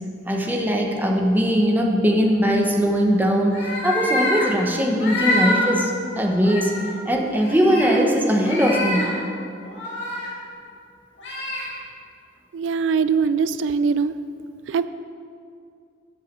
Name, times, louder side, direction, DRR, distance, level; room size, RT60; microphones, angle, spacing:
voice 1, 0.3-5.9 6.2-6.7 7.0-9.1, equal, 10° right, 1 dB, 1.0 m, -20 dB
sound 1, 3.5-4.4 5.0-5.6 6.1-6.2 6.4-6.9 7.4-8.0 8.4-9.1 9.6-10.3 11.2-11.6, left 2 dB, 85° left, 2.7 m, -26 dB
voice 2, 12.5-14.1 14.7-14.9, right 5 dB, 85° right, 14 dB, 0.3 m, -21 dB
8.1 x 7.4 x 6.7 m, 2.4 s
head